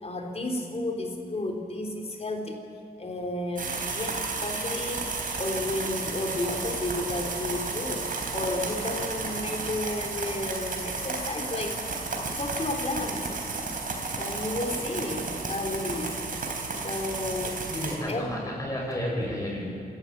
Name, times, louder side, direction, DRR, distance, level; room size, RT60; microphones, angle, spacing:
voice 1, 0.0-2.6 3.0-5.0 5.4-8.0 8.3-11.9 12.4-13.2 14.1-16.1 16.8-17.6 18.1-18.3, left 2 dB, 40° left, 2 dB, 3.5 m, -32 dB
sound 1, 3.6-18.0, right 3 dB, 60° right, 4.1 m, -32 dB
voice 2, 17.1-17.4 17.7-19.7, left 1 dB, 20° left, -2 dB, 7.8 m, -32 dB
27.5 x 13.5 x 8.7 m, 2.5 s
wide cardioid pair, 95°, 16 cm